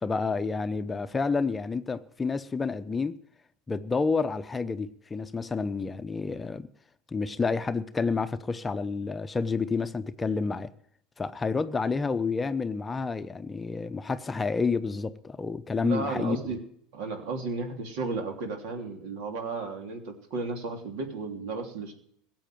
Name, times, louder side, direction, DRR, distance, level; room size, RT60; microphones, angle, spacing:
voice 1, 0.0-3.2 3.7-6.7 7.1-10.7 11.2-16.4, left 4 dB, 20° left, 0.7 m, -29 dB
voice 2, 15.8-16.6 16.9-21.9, right 3 dB, 65° right, 3.1 m, -34 dB
16.5 x 7.8 x 9.1 m
hypercardioid pair, 90°, 0 cm